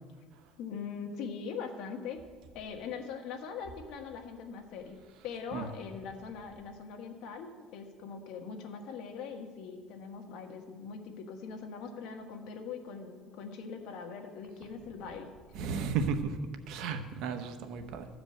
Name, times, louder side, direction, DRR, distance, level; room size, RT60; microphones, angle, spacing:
voice 1, 0.6-2.2 2.5-5.0 5.2-15.3, left 6 dB, 70° left, 3 dB, 1.5 m, -42 dB
voice 2, 15.6-16.4 16.7-18.1, right 5 dB, 65° right, 7 dB, 1.0 m, -33 dB
14.0 x 5.1 x 7.9 m, 1.5 s
cardioid pair, 135°, 0 cm